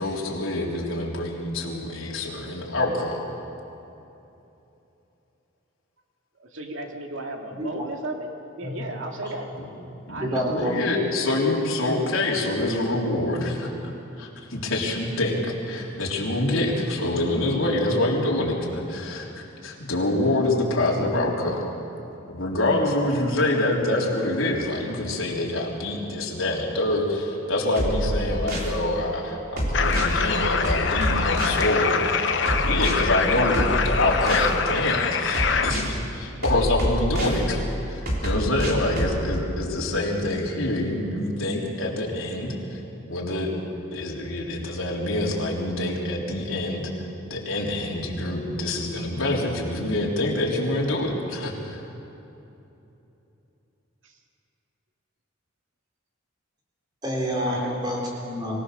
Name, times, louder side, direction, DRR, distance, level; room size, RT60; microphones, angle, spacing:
voice 1, 0.0-3.2 10.1-13.7 14.2-21.6 22.3-42.8 43.1-43.5 43.9-46.9 47.3-51.8, left 1 dB, 85° left, -3 dB, 3.8 m, -26 dB
voice 2, 6.4-8.3 8.6-9.5 10.1-10.6 54.0-54.1 57.4-57.8, right 2 dB, 70° right, 2 dB, 2.2 m, -34 dB
voice 3, 10.2-10.8 57.0-58.6, equal, 20° right, -2 dB, 4.3 m, -27 dB
sound 1, 27.8-28.7 29.6-30.1 30.6-31.6 32.5-32.9 33.5-34.5 35.3-35.9 36.4-37.4 38.1-39.2, equal, 50° right, 3.5 m, -26 dB
sound 2, 29.7-35.7, left 5 dB, 60° left, 1.0 m, -24 dB
24.5 x 17.5 x 6.8 m, 2.9 s
head